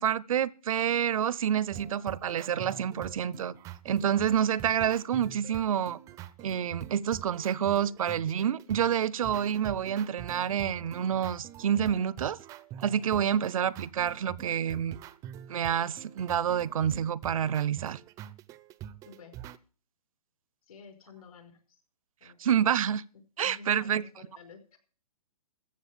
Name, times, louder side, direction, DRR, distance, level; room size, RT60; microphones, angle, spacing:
voice 1, 0.0-3.5 3.8-6.0 6.4-12.4 12.8-15.0 15.5-18.0 22.4-23.0 23.4-24.0, right 9 dB, 65° right, 0.7 m, -28 dB
sound 1, 1.7-19.6, right 11 dB, 15° right, 0.5 m, -45 dB
voice 2, 19.0-19.4 20.7-21.8 22.2-22.6 23.4-24.8, left 5 dB, 65° left, 5.2 m, -51 dB
14.5 x 7.3 x 7.5 m
hypercardioid pair, 150°, 20 cm